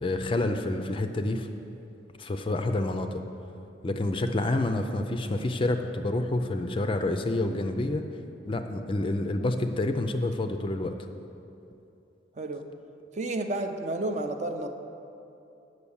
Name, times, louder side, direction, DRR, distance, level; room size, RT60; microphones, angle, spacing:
voice 1, 0.0-1.5 2.2-3.2 3.8-8.0 8.5-10.9, left 2 dB, 30° left, 7 dB, 0.4 m, -28 dB
voice 2, 13.1-14.7, right 2 dB, 40° right, 6 dB, 0.5 m, -31 dB
8.3 x 6.4 x 7.0 m, 2.8 s
head